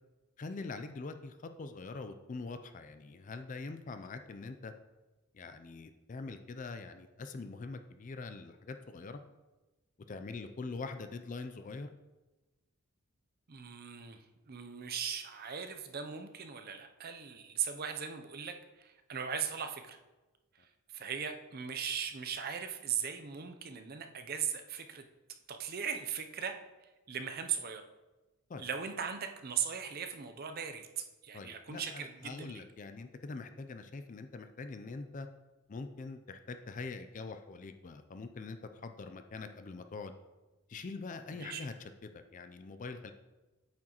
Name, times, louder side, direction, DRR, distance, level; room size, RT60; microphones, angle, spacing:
voice 1, 0.4-4.7 5.3-9.2 10.1-11.9 28.5-28.6 31.3-35.3 35.7-40.1 40.7-41.7 42.0-43.1, left 3 dB, 35° left, 8 dB, 0.4 m, -43 dB
voice 2, 13.5-20.0 20.6-25.0 25.5-27.9 28.6-32.6 41.3-41.7, right 7 dB, 40° right, 6 dB, 0.5 m, -39 dB
8.6 x 6.2 x 3.0 m, 1.1 s
head